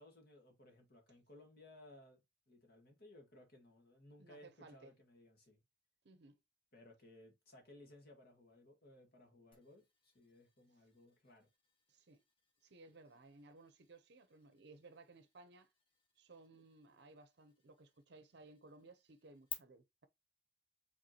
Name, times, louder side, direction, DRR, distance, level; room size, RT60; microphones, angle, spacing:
voice 1, 0.0-2.2 2.5-5.6 6.7-11.5, left 1 dB, 55° left, 1.7 m, -61 dB
voice 2, 4.2-4.9 6.0-6.3 11.9-12.2 12.6-15.7 16.2-20.1, right 3 dB, 60° right, 0.6 m, -60 dB
sound 1, 9.5-19.5, left 6 dB, 30° left, 1.0 m, -58 dB
5.2 x 3.5 x 2.9 m
head